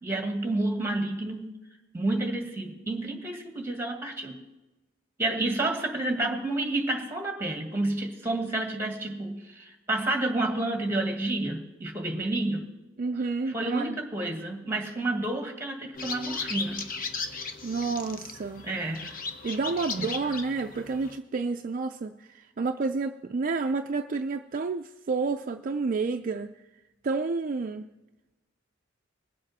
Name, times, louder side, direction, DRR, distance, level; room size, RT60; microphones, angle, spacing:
voice 1, 0.0-1.5 1.9-4.4 5.2-12.6 13.5-16.9 18.6-19.2 20.0-20.1, right 2 dB, 10° right, 3 dB, 1.8 m, -30 dB
voice 2, 13.0-14.0 17.6-18.7 19.4-26.6 27.0-27.9, right 4 dB, 45° right, 6 dB, 0.4 m, -30 dB
sound 1, 15.9-21.2, left 4 dB, 45° left, 1.0 m, -36 dB
21.0 x 7.5 x 4.2 m, 1.1 s
head